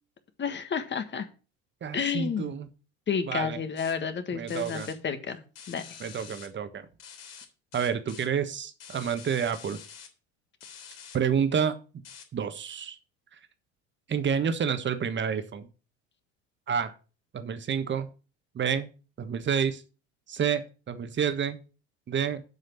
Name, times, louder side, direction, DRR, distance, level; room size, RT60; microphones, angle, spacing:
voice 1, 0.4-1.3 1.9-2.5 3.1-5.8, left 6 dB, 30° left, 10 dB, 1.5 m, -31 dB
voice 2, 1.8-2.7 3.2-3.6 4.3-4.9 6.0-6.9 7.7-9.8 11.1-11.8 12.3-13.0 14.1-15.7 16.7-16.9 17.3-18.1 18.5-18.9 19.2-19.8 20.3-21.6 22.1-22.4, right 7 dB, 30° right, 10 dB, 1.4 m, -29 dB
sound 1, 3.8-3.9 4.5-4.9 5.6-6.5 7.0-7.4 7.7-8.3 8.8-10.1 10.6-11.2 12.0-12.2, left 7 dB, 60° left, 3.4 m, -47 dB
8.1 x 5.0 x 7.4 m, 0.35 s
hypercardioid pair, 70°, 35 cm